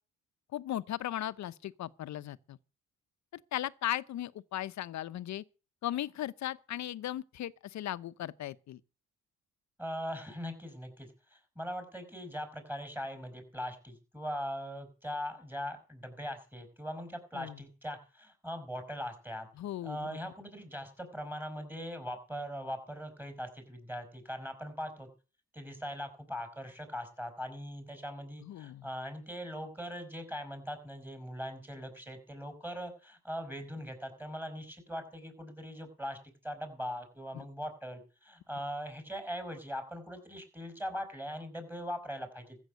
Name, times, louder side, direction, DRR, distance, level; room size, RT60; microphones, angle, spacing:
voice 1, 0.5-2.6 3.5-5.4 5.8-8.8 17.3-17.6 19.6-20.2 28.4-28.9 37.3-37.4, left 13 dB, 65° left, 0.8 m, -37 dB
voice 2, 9.8-19.5 19.8-25.1 25.5-42.6, equal, 5° right, 5.2 m, -41 dB
15.0 x 7.4 x 7.9 m
cardioid pair, 90°, 30 cm